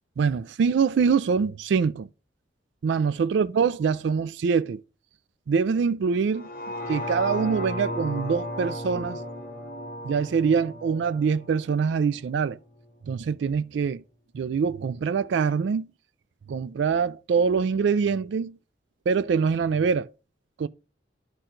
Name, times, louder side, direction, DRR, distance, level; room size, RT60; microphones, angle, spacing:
voice 1, 0.2-2.1 2.8-4.8 5.5-6.5 6.9-9.2 10.0-12.6 13.1-14.0 14.3-15.9 16.5-18.5 19.1-20.1 20.6-20.7, right 5 dB, 70° right, 0.3 m, -24 dB
sound 1, 6.3-12.5 12.9-13.0, left 1 dB, 45° left, 1.4 m, -35 dB
11.0 x 4.3 x 3.8 m
head